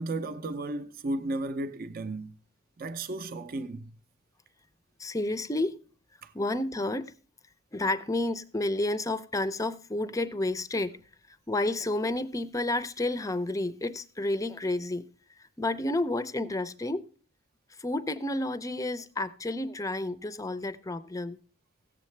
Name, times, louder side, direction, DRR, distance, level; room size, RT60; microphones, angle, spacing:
voice 1, 0.0-2.4 2.8-4.0 6.2-6.3, right 2 dB, 45° right, 0.5 m, -34 dB
voice 2, 5.0-5.8 6.3-7.1 7.7-11.0 11.5-15.0 15.6-17.1 17.8-21.4, left 2 dB, 15° left, 0.5 m, -30 dB
16.0 x 7.4 x 3.2 m
head